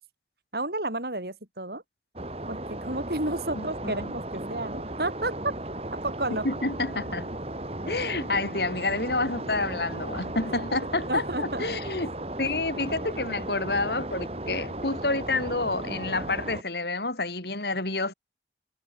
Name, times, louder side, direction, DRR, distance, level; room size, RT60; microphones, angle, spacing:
voice 1, 0.5-1.8 2.5-5.5 6.0-6.5 11.1-11.6, right 2 dB, 65° right, 5.5 m, -31 dB
sound 1, 2.2-16.6, right 1 dB, 35° right, 2.3 m, -36 dB
voice 2, 3.5-4.1 6.4-7.3 7.9-12.1 12.4-18.1, left 2 dB, 70° left, 5.6 m, -29 dB
head